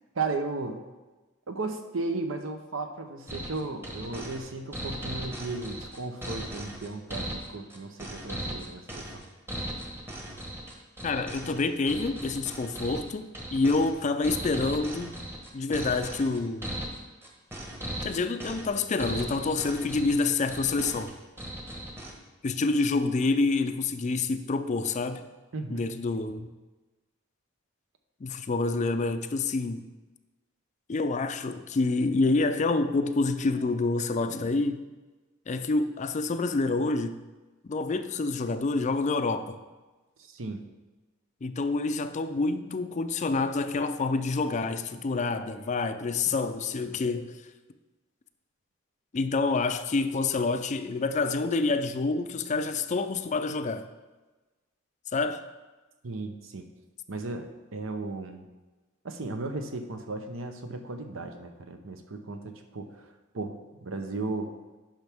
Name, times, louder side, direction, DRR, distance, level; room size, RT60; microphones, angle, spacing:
voice 1, 0.1-0.8 1.5-9.0 25.5-25.8 40.3-40.6 56.0-56.6 57.1-58.4 59.0-62.9 63.3-63.5 63.8-64.5, right 3 dB, 75° right, 6 dB, 0.8 m, -35 dB
sound 1, 3.3-22.1, right 1 dB, 10° right, 1.1 m, -38 dB
voice 2, 11.0-15.2 15.5-16.7 18.0-21.1 22.4-25.2 25.7-26.5 28.2-29.8 30.9-34.8 35.5-37.2 37.6-39.6 41.4-47.4 49.1-53.9 55.1-55.4, left 3 dB, 35° left, 10 dB, 0.4 m, -27 dB
10.5 x 5.9 x 3.5 m, 1.2 s
head